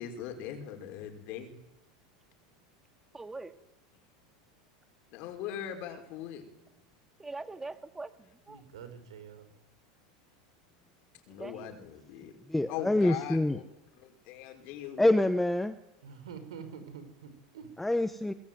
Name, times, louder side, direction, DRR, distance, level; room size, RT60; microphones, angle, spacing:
voice 1, 0.0-1.6 5.1-6.4 11.3-12.3 12.7-13.6 14.0-15.0, left 10 dB, 55° left, 5 dB, 5.5 m, -40 dB
voice 2, 3.1-3.6 7.2-8.6 11.3-11.8, right 3 dB, 10° right, 10 dB, 2.0 m, -43 dB
voice 3, 8.5-9.5 16.0-17.7, right 6 dB, 90° right, 10 dB, 5.7 m, -46 dB
voice 4, 12.5-13.6 15.0-15.7 17.8-18.3, left 1 dB, 5° left, 11 dB, 1.0 m, -26 dB
23.5 x 21.0 x 9.5 m, 0.87 s
supercardioid pair, 125°, 3 cm